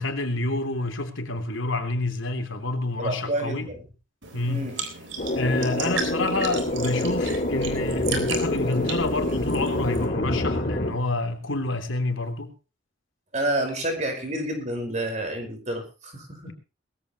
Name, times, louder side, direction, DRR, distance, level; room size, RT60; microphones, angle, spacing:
voice 1, 0.0-3.6 4.3-4.7 5.3-12.5, left 2 dB, 90° left, 3.3 m, -28 dB
voice 2, 3.0-3.8 4.4-4.8 13.3-16.5, right 1 dB, 35° right, 5.1 m, -29 dB
sound 1, 4.2-10.1, right 5 dB, 80° right, 3.9 m, -36 dB
sound 2, 5.2-10.9, left 1 dB, 40° left, 2.8 m, -26 dB
20.5 x 15.0 x 3.1 m
head